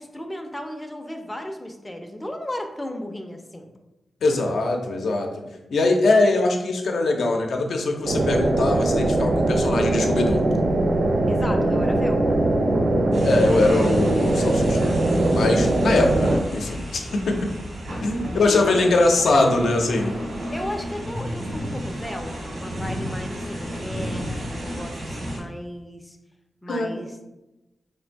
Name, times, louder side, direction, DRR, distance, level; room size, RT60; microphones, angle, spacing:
voice 1, 0.0-3.7 11.3-12.4 18.2-18.9 19.3-19.5 20.5-26.2 26.6-27.1, left 1 dB, 10° left, 4 dB, 0.4 m, -35 dB
voice 2, 4.2-5.3 5.7-10.4 13.2-14.8 15.3-17.4 18.0-20.1 26.7-27.0, left 2 dB, 90° left, 2 dB, 0.5 m, -22 dB
sound 1, 8.0-16.4, right 1 dB, 60° right, 0.5 m, -21 dB
sound 2, 13.1-25.4, equal, 85° right, 1.5 m, -33 dB
3.2 x 2.6 x 4.4 m, 0.97 s
wide cardioid pair, 155°, 0 cm